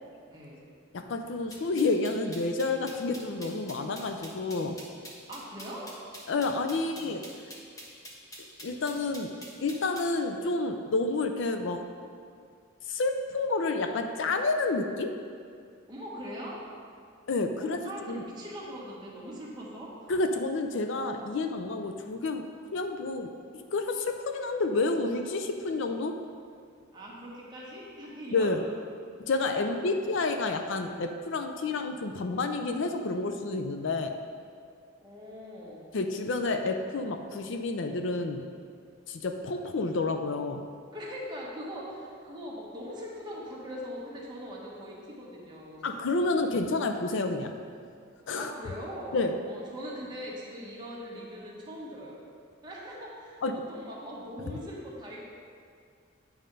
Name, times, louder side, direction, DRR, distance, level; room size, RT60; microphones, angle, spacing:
voice 1, 0.3-0.7 5.3-5.9 6.7-7.1 15.9-16.6 17.6-20.1 26.9-28.5 29.4-30.1 35.0-35.9 40.9-46.0 48.3-52.2 52.6-55.2, equal, 20° right, -5 dB, 1.4 m, -41 dB
voice 2, 0.9-4.8 6.3-7.2 8.6-9.3 9.6-11.9 12.9-15.2 17.3-17.8 18.1-18.2 20.1-26.2 28.3-28.6 29.2-34.2 35.9-38.5 39.1-40.6 45.8-47.5 48.3-48.5 49.1-49.4 53.4-53.6, left 3 dB, 60° left, 6 dB, 0.5 m, -29 dB
sound 1, 1.5-10.1, equal, 15° left, 1.1 m, -45 dB
9.2 x 4.3 x 5.3 m, 2.2 s
head